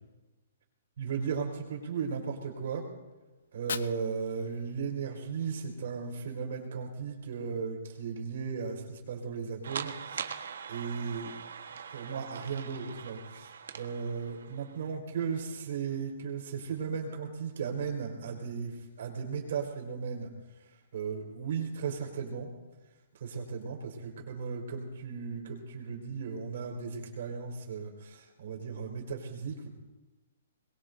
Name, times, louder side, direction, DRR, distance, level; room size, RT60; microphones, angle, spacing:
voice 1, 1.0-2.9 3.5-11.4 11.9-20.3 20.7-22.5 23.1-29.7, right 6 dB, 50° right, 0 dB, 4.5 m, -36 dB
Fire, 3.4-5.4, left 6 dB, 85° left, 0.7 m, -43 dB
sound 1, 9.6-14.9, right 6 dB, 85° right, 1.3 m, -42 dB
23.0 x 22.0 x 2.7 m, 1.2 s
hypercardioid pair, 180°, 0 cm